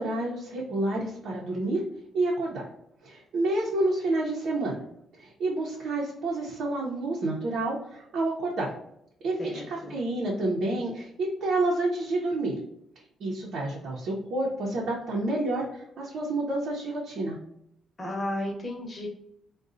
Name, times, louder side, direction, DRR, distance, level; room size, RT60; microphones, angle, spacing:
voice 1, 0.0-1.8 2.1-2.7 3.0-4.8 5.1-8.7 9.2-12.6 13.2-17.4, right 2 dB, 65° right, -4 dB, 0.7 m, -29 dB
voice 2, 9.4-9.9 18.0-19.1, left 1 dB, 30° left, 0 dB, 1.0 m, -33 dB
3.7 x 2.3 x 2.6 m, 0.76 s
cardioid pair, 90°, 0 cm